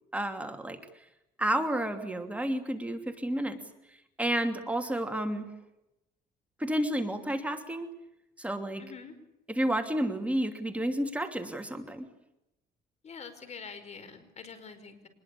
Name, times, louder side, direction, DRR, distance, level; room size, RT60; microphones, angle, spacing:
voice 1, 0.1-0.8 1.4-3.6 4.2-5.5 6.6-7.9 8.4-8.8 9.5-12.1, right 1 dB, 10° right, 5 dB, 2.8 m, -31 dB
voice 2, 8.8-9.2 13.0-15.1, left 5 dB, 40° left, 11 dB, 5.3 m, -45 dB
25.5 x 21.5 x 8.6 m, 0.87 s
cardioid pair, 110°, 17 cm